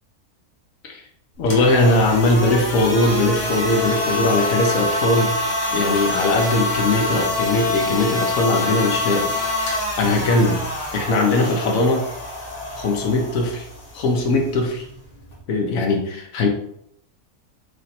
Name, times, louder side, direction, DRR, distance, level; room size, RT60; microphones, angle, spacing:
sound 1, 1.3-15.4, left 2 dB, 60° left, 1.4 m, -26 dB
voice 1, 1.4-5.3 5.7-9.3 10.0-10.6 10.9-12.0 12.8-13.7 13.9-14.8 15.5-16.5, left 2 dB, 75° left, 2 dB, 1.1 m, -20 dB
3.2 x 2.6 x 4.1 m, 0.72 s
omnidirectional pair, 1.4 m